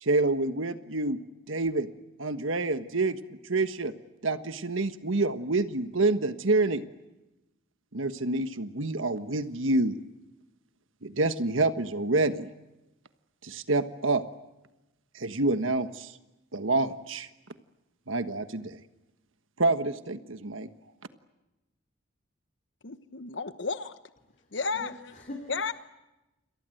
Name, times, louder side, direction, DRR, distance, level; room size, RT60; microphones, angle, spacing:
voice 1, 0.0-1.2 1.5-1.9 2.2-3.2 3.4-3.9 4.2-6.8 7.9-10.0 11.0-12.5 13.4-14.2 15.1-16.1 16.5-17.3 18.1-18.8 19.6-20.7, right 2 dB, 85° right, 1.4 m, -27 dB
voice 2, 22.8-24.0 24.5-25.1 25.5-25.7, left 4 dB, 65° left, 1.2 m, -33 dB
voice 3, 24.7-25.7, left 1 dB, 40° left, 3.7 m, -42 dB
29.5 x 23.5 x 7.9 m
head